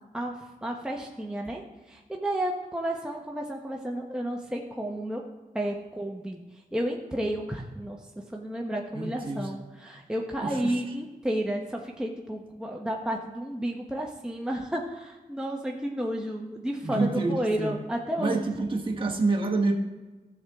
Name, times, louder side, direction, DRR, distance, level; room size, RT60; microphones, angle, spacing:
voice 1, 0.6-1.6 1.9-5.2 5.5-6.4 6.7-8.0 8.3-18.5, right 1 dB, 5° right, 0 dB, 1.0 m, -31 dB
voice 2, 8.9-9.5 10.4-10.8 16.8-17.8 18.2-19.7, right 3 dB, 30° right, -1 dB, 1.3 m, -28 dB
13.0 x 7.3 x 3.6 m, 1.2 s
cardioid pair, 60°, 16 cm